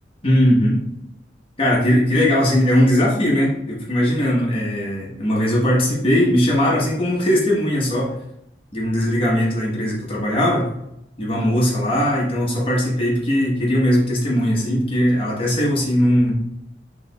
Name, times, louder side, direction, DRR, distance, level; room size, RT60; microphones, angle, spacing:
voice 1, 0.2-0.7 1.6-8.1 8.7-10.7 11.2-16.3, equal, 30° left, -3 dB, 1.1 m, -19 dB
4.6 x 3.8 x 2.3 m, 0.80 s
head